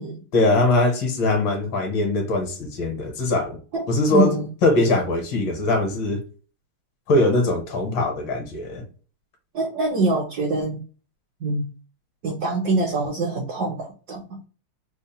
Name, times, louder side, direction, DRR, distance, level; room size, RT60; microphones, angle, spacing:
voice 1, 0.3-3.6 3.9-4.3 4.6-6.2 7.1-8.8, left 2 dB, 65° left, 1.7 m, -21 dB
voice 2, 3.7-4.5 9.5-10.8 11.4-11.7 12.2-14.4, right 2 dB, 65° right, 1.0 m, -24 dB
3.6 x 2.1 x 4.0 m
omnidirectional pair, 2.3 m